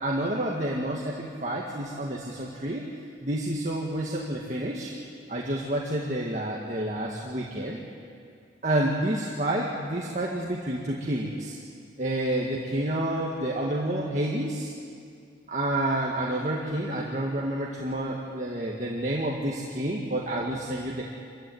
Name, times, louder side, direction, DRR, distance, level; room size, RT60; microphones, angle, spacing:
voice 1, 0.0-2.9 3.2-4.9 5.3-7.8 8.6-11.6 12.0-14.7 15.5-21.1, right 1 dB, 40° right, -3 dB, 2.0 m, -29 dB
26.5 x 15.0 x 9.4 m, 2.4 s
head